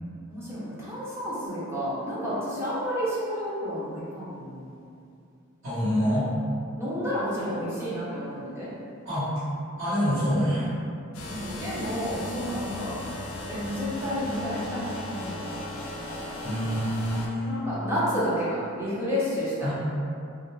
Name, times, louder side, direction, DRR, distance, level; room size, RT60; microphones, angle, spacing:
voice 1, 0.3-4.7 6.8-8.7 11.3-13.0 13.5-15.8 17.4-19.7, equal, 10° right, -10 dB, 0.6 m, -30 dB
voice 2, 5.6-6.3 9.0-9.3 9.8-10.7 16.4-17.5 19.6-19.7, equal, 60° right, -16 dB, 1.0 m, -26 dB
sound 1, 11.1-17.3, left 1 dB, 80° left, 0.4 m, -36 dB
2.4 x 2.1 x 3.0 m, 2.5 s
head